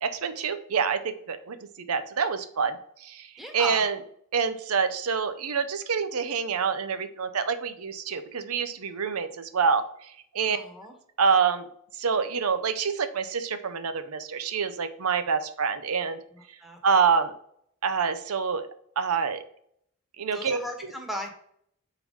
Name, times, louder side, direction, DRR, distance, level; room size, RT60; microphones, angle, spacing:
voice 1, 0.0-3.3 3.5-4.0 4.3-10.6 11.2-11.7 12.0-16.2 16.8-17.3 17.8-18.7 19.0-19.4 20.2-20.9, right 6 dB, 85° right, 10 dB, 0.7 m, -27 dB
voice 2, 3.4-3.8 10.5-10.9 16.6-16.8 20.3-21.3, equal, ahead, 2 dB, 1.1 m, -36 dB
4.6 x 3.8 x 5.3 m, 0.68 s
head